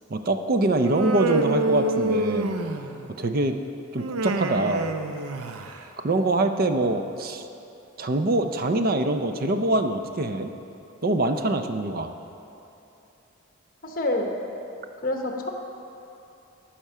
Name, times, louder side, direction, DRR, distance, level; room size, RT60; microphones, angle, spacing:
voice 1, 0.1-2.5 3.2-3.6 3.9-4.9 6.0-7.5 8.0-10.5 11.0-12.1, right 2 dB, 40° right, 7 dB, 0.5 m, -24 dB
Human voice, 0.8-3.1 4.0-5.8, right 2 dB, 90° right, 0.6 m, -27 dB
voice 2, 13.8-14.3 15.0-15.5, left 1 dB, 40° left, 2 dB, 1.0 m, -27 dB
14.0 x 5.9 x 5.5 m, 2.9 s
head